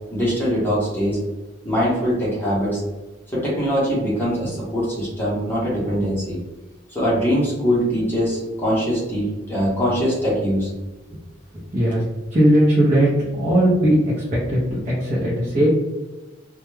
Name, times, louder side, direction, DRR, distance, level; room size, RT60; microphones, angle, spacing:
voice 1, 0.1-1.2 1.6-2.8 3.3-6.4 6.9-10.7, equal, 10° left, -8 dB, 0.8 m, -22 dB
voice 2, 12.3-14.1 14.5-14.6 14.9-15.7, right 1 dB, 35° right, -7 dB, 0.6 m, -18 dB
2.2 x 2.1 x 3.1 m, 1.1 s
head